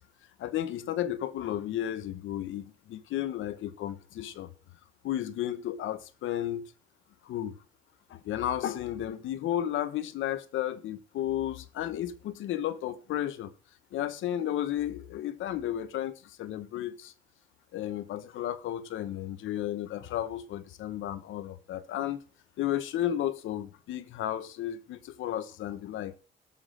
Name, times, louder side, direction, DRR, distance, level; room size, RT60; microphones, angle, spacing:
voice 1, 0.4-4.5 5.0-6.7 7.2-7.5 8.1-13.5 13.9-17.1 17.7-22.2 22.6-26.1, left 11 dB, 80° left, 1.0 m, -33 dB
13.0 x 5.7 x 6.4 m
cardioid pair, 90°, 20 cm